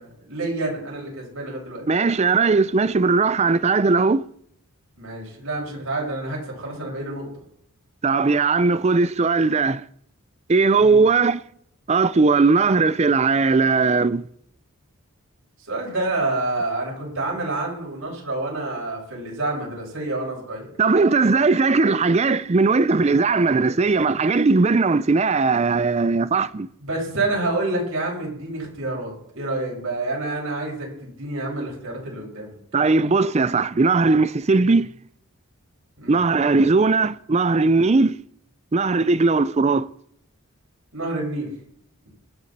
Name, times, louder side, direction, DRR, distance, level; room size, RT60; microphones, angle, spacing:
voice 1, 0.0-1.9 5.0-7.3 10.8-11.0 15.7-20.7 26.8-32.6 36.0-36.2 40.9-41.5, right 2 dB, 70° right, 5.8 m, -28 dB
voice 2, 1.9-4.3 8.0-9.8 10.5-11.4 11.9-14.2 20.8-26.7 32.7-34.9 36.1-38.2 38.7-39.9, right 4 dB, 30° right, 0.4 m, -18 dB
24.5 x 8.4 x 4.2 m
head